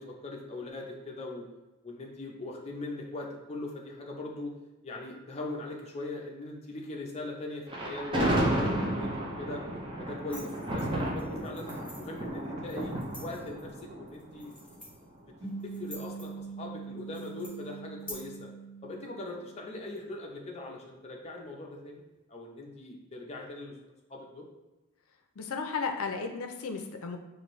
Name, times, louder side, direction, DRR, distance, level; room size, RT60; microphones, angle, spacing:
voice 1, 0.0-1.4 1.8-4.5 4.8-9.1 9.4-9.6 10.0-11.7 12.0-12.9 13.2-14.6 15.6-18.5 18.8-22.0 22.3-23.7 24.1-24.4, left 2 dB, 30° left, 0 dB, 0.6 m, -40 dB
Thunder, 7.7-14.9, right 1 dB, 20° right, 0.6 m, -32 dB
sound 1, 10.3-18.1, left 1 dB, 5° left, 0.9 m, -50 dB
sound 2, 15.4-20.1, right 5 dB, 55° right, 1.5 m, -43 dB
voice 2, 25.4-27.2, left 5 dB, 75° left, 5 dB, 0.5 m, -34 dB
4.7 x 2.6 x 3.1 m, 1.0 s
head